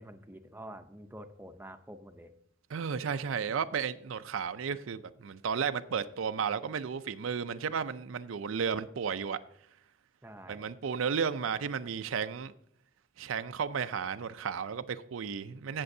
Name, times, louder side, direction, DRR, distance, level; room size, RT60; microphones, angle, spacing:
voice 1, 0.0-2.3 10.2-10.7, right 1 dB, 10° right, 0.6 m, -48 dB
voice 2, 2.7-9.4 10.5-12.5 13.2-15.8, right 6 dB, 80° right, 0.5 m, -33 dB
16.0 x 6.9 x 2.7 m
head